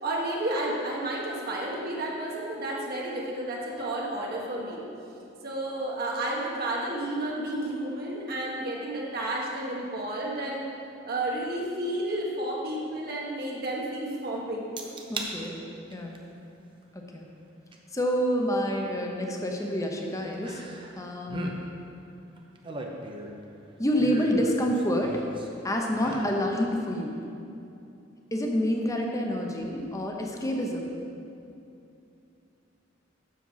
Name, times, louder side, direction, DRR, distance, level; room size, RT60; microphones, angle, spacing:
voice 1, 0.0-4.8 5.4-10.6 11.0-14.7, right 1 dB, 55° right, -3 dB, 1.3 m, -31 dB
sound 1, 14.8-15.3 15.8-16.2 17.7-17.8 20.4-21.0 21.2-21.6 22.4-23.4 24.0-25.5 25.9-26.4 26.8-26.9, right 2 dB, 25° right, 0.8 m, -38 dB
voice 2, 15.1-15.6 15.9-16.2 16.9-17.3 17.9-20.6 21.0-21.5 23.8-25.2 25.6-27.2 28.3-30.9, equal, 15° left, 1 dB, 0.9 m, -28 dB
7.5 x 6.9 x 5.6 m, 2.7 s
head